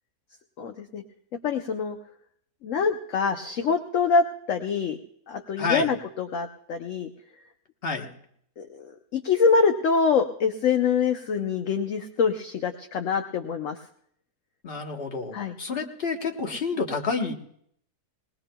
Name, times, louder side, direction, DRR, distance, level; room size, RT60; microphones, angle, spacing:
voice 1, 0.6-1.0 1.4-2.0 2.6-5.0 5.3-7.1 8.6-8.8 9.1-13.8 15.3-15.5, left 5 dB, 60° left, 5 dB, 0.9 m, -25 dB
voice 2, 5.6-5.9 7.8-8.1 14.6-17.3, left 4 dB, 40° left, 3 dB, 1.3 m, -29 dB
21.0 x 19.0 x 2.2 m, 0.67 s
omnidirectional pair, 1.8 m